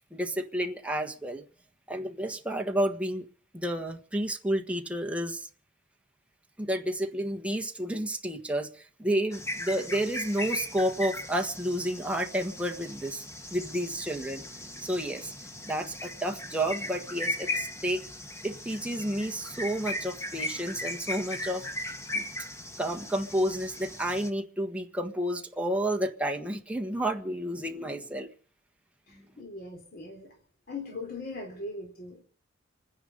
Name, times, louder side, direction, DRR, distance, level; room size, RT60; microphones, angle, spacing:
voice 1, 0.1-1.4 1.9-3.2 3.5-5.5 6.6-13.2 13.5-14.4 14.8-15.3 15.6-18.0 18.4-21.7 22.1-22.2 22.8-28.3 29.1-29.3, right 1 dB, 5° right, 3 dB, 1.5 m, -31 dB
sound 1, 9.3-24.3, left 1 dB, 15° left, 1.4 m, -38 dB
voice 2, 29.1-30.3 30.7-32.2, left 2 dB, 50° left, 1 dB, 3.5 m, -40 dB
26.0 x 10.0 x 5.4 m, 0.44 s
head